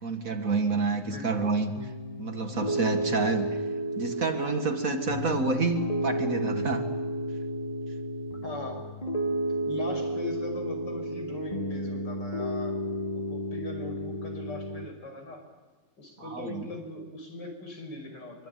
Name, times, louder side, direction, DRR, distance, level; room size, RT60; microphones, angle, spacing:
voice 1, 0.0-1.7 2.2-3.5 4.0-6.9 16.2-16.7, right 3 dB, 50° right, 6 dB, 2.1 m, -28 dB
voice 2, 1.0-1.5 8.4-8.8 9.7-12.8 13.1-15.4 16.0-18.5, left 2 dB, 70° left, 4 dB, 6.5 m, -39 dB
Piano, 1.8-14.9, right 1 dB, 20° left, 1.5 m, -32 dB
24.5 x 24.0 x 9.2 m, 1.3 s
omnidirectional pair, 2.0 m